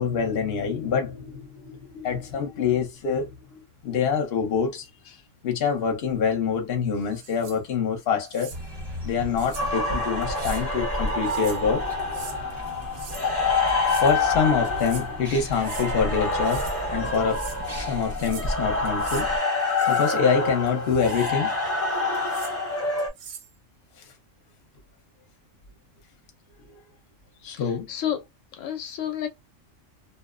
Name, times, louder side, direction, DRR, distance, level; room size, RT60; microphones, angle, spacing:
voice 1, 0.0-5.2 5.4-8.5 9.0-11.8 13.9-16.6 16.9-17.4 17.7-19.3 19.9-21.5 27.4-27.9, left 6 dB, 55° left, 0.9 m, -26 dB
sound 1, 7.1-7.6 8.2-8.6 9.4-9.7 10.2-10.6 11.1-11.6 12.0-12.4 12.8-13.3 13.7-14.2 14.6-15.1 15.5-15.9 16.3-16.8 17.1-17.6 18.0-18.5 18.8-19.3 19.7-20.2 20.7-21.4 22.1-22.5 23.0-23.5, right 6 dB, 65° right, 0.8 m, -43 dB
sound 2, 8.5-19.4, equal, 25° right, 0.7 m, -36 dB
sound 3, 9.5-23.1, left 3 dB, 15° left, 0.5 m, -27 dB
voice 2, 27.5-28.2 28.6-29.3, left 10 dB, 80° left, 0.9 m, -31 dB
2.6 x 2.0 x 2.4 m
omnidirectional pair, 1.3 m